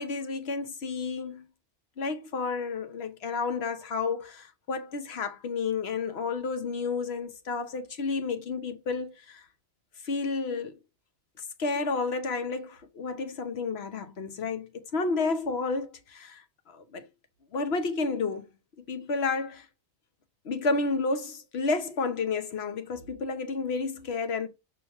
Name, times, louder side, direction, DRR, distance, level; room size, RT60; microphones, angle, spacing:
voice 1, 0.0-1.5 2.0-9.4 10.0-10.8 11.6-17.0 17.5-18.4 18.9-19.7 20.4-24.5, left 4 dB, 65° left, 1.2 m, -31 dB
6.7 x 3.4 x 4.4 m
omnidirectional pair, 1.2 m